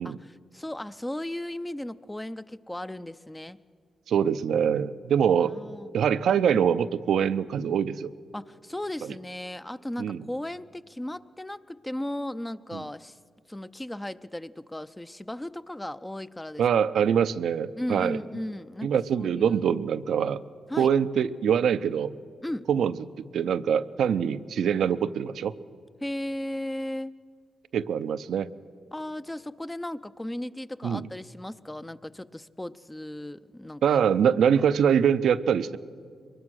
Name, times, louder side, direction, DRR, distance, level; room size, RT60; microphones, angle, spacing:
voice 1, 0.0-3.6 5.4-6.0 8.3-13.2 13.5-16.6 17.0-17.1 17.8-19.6 20.7-20.9 22.4-22.7 26.0-27.1 28.9-34.0 34.6-34.7, left 1 dB, 15° left, 11 dB, 0.6 m, -36 dB
voice 2, 4.1-5.6 5.9-8.1 10.0-10.2 12.7-12.8 16.6-18.2 18.8-20.4 20.8-22.1 22.7-25.5 27.7-28.5 30.8-31.1 33.8-35.8, right 8 dB, 80° right, 14 dB, 0.5 m, -24 dB
22.5 x 20.5 x 6.3 m, 2.2 s
supercardioid pair, 50°, 0 cm